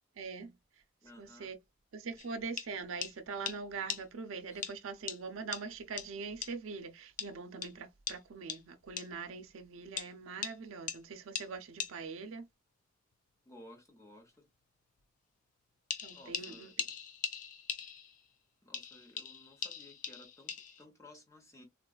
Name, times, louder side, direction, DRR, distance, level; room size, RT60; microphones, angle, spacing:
voice 1, 0.2-0.6 1.2-1.6 1.9-12.5 16.0-16.7, right 4 dB, 75° right, 0.5 m, -43 dB
voice 2, 1.0-1.5 4.5-4.7 13.5-14.5 16.1-16.8 18.6-21.6, left 1 dB, 15° left, 0.8 m, -56 dB
sound 1, 2.2-2.3 2.6-2.7 3.0-3.1 3.5-3.6 3.9-4.0 4.6-4.7 5.1-5.2 5.5-5.6 6.0-6.1 6.4-6.5 7.2-7.3 7.6-7.7 8.1-8.2 8.5-8.6 9.0-9.1 10.0-10.1 10.4-10.6 10.9-11.0 11.3-11.5 11.8-11.9 15.9-18.3 18.7-20.8, left 7 dB, 40° left, 0.4 m, -40 dB
3.6 x 2.3 x 2.3 m
head